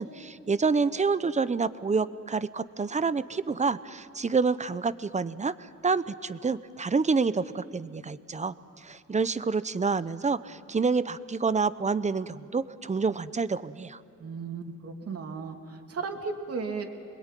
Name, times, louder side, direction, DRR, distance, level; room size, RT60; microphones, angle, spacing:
voice 1, 0.0-5.5 5.8-14.0, right 4 dB, 25° right, 14 dB, 0.8 m, -28 dB
voice 2, 14.2-16.9, right 4 dB, 50° right, 3 dB, 2.9 m, -35 dB
26.5 x 21.5 x 9.2 m, 2.7 s
cardioid pair, 90°, 30 cm